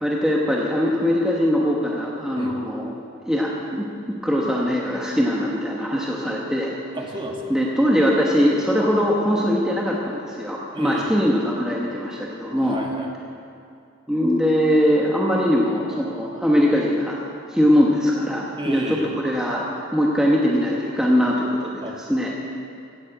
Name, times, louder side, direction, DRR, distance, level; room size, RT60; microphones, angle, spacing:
voice 1, 0.0-2.9 3.2-3.8 4.2-6.7 7.5-12.8 14.1-17.2 17.5-19.0 19.2-19.7 19.9-21.8 22.1-22.3, equal, 5° right, -4 dB, 1.1 m, -21 dB
voice 2, 6.9-7.6 10.7-11.2 12.6-13.1 18.6-19.1 21.8-22.0, right 1 dB, 25° right, 1 dB, 1.6 m, -32 dB
16.0 x 7.5 x 7.8 m, 2.5 s
head